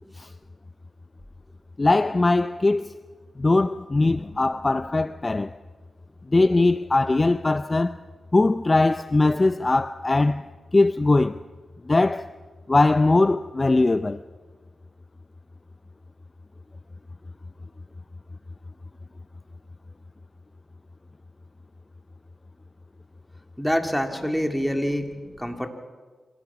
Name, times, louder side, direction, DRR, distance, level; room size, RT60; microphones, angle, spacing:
voice 1, 1.8-2.9 3.4-5.6 6.3-8.0 8.3-10.5 10.7-11.4 11.9-12.3 12.7-14.2, left 2 dB, 30° left, 0.5 m, -20 dB
voice 2, 23.6-25.1 25.4-25.7, equal, ahead, 2.7 m, -26 dB
26.5 x 17.0 x 6.0 m
cardioid pair, 60°, 0 cm